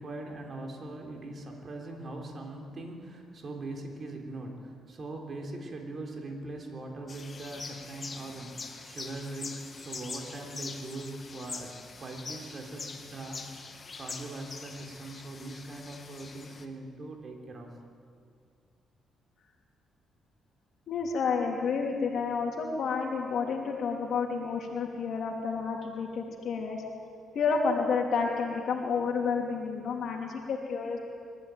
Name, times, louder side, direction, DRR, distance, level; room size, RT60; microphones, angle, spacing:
voice 1, 0.0-13.7 14.0-17.8, right 2 dB, 45° right, 1 dB, 3.8 m, -41 dB
sound 1, 7.1-16.6, left 4 dB, 35° left, 2.0 m, -43 dB
voice 2, 20.9-26.8 27.3-31.0, left 5 dB, 65° left, 0 dB, 3.2 m, -30 dB
23.5 x 14.5 x 9.2 m, 2.2 s
cardioid pair, 90°, 0 cm